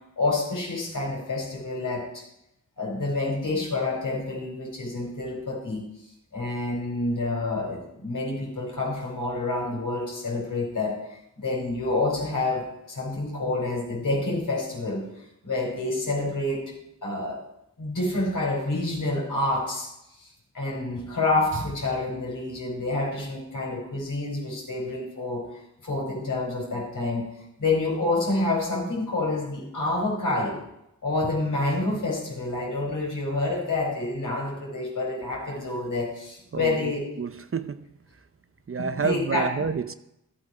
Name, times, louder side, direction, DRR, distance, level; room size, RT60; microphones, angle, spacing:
voice 1, 0.2-2.2 2.8-5.8 6.3-11.0 11.4-15.1 15.4-16.7 17.0-17.4 17.8-19.9 20.2-25.4 25.8-27.2 27.6-30.6 31.0-37.0 38.8-39.5, left 2 dB, 70° left, -2 dB, 4.8 m, -28 dB
voice 2, 36.5-37.9 38.7-39.9, right 5 dB, 40° right, 12 dB, 0.7 m, -29 dB
13.5 x 8.5 x 4.9 m, 0.85 s
cardioid pair, 45°, 33 cm